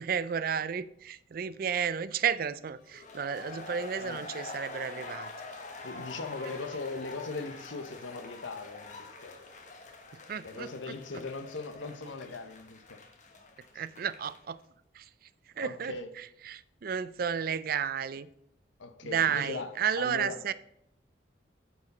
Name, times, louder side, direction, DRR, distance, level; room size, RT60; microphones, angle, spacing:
voice 1, 0.0-5.3 10.3-10.7 13.7-14.6 14.9-15.1 15.6-18.3 19.0-20.5, right 7 dB, 50° right, 0.4 m, -32 dB
sound 1, 2.9-14.5, left 3 dB, 40° left, 1.1 m, -45 dB
voice 2, 5.8-9.4 10.4-13.0 13.7-13.8 15.6-16.1 18.8-20.5, left 3 dB, 85° left, 0.9 m, -39 dB
9.5 x 4.7 x 5.3 m
head